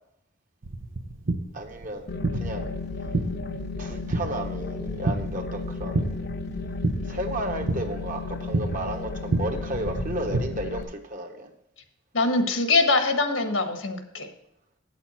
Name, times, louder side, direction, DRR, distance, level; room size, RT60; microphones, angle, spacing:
sound 1, 0.6-10.4, right 2 dB, 85° right, 1.0 m, -31 dB
voice 1, 1.5-2.7 3.8-6.2 7.1-11.5, right 1 dB, 45° right, 4 dB, 1.3 m, -33 dB
sound 2, 2.1-10.8, left 3 dB, 55° left, 0.8 m, -34 dB
voice 2, 12.1-14.3, left 3 dB, 85° left, 6 dB, 1.5 m, -23 dB
9.2 x 8.1 x 4.2 m, 0.81 s
head